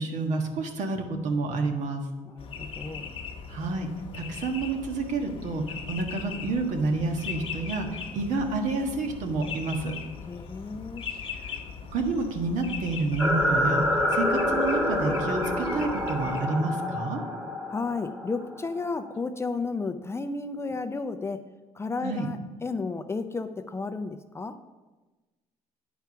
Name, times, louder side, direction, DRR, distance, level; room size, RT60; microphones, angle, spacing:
voice 1, 0.0-2.0 3.5-3.9 4.1-9.9 11.9-17.2 22.0-22.3, right 3 dB, 70° right, 3 dB, 1.4 m, -29 dB
voice 2, 2.3-3.2 10.3-11.1 17.7-21.4 21.7-24.6, left 4 dB, 20° left, 9 dB, 0.5 m, -33 dB
sound 1, 2.4-16.4, left 6 dB, 45° left, 1.0 m, -40 dB
sound 2, 13.2-19.1, left 1 dB, 10° right, 1.3 m, -27 dB
9.4 x 4.6 x 5.8 m, 1.2 s
cardioid pair, 105°, 13 cm